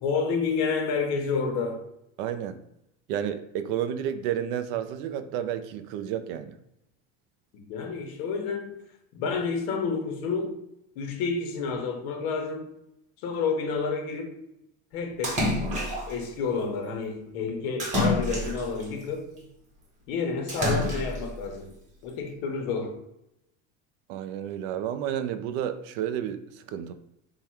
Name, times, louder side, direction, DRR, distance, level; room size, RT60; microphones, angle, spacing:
voice 1, 0.0-1.8 7.5-8.8 9.1-10.6 11.0-12.7 13.2-14.4 14.9-15.7 16.1-19.4 20.1-21.7 22.0-23.0, left 5 dB, 65° left, 0.9 m, -29 dB
voice 2, 2.2-2.6 3.1-6.6 24.1-26.9, right 9 dB, 65° right, 0.4 m, -31 dB
Splash splatter, 15.2-16.2 17.8-18.9 20.5-21.3, left 1 dB, 25° right, 0.9 m, -27 dB
3.6 x 2.2 x 4.3 m
cardioid pair, 160°, 30 cm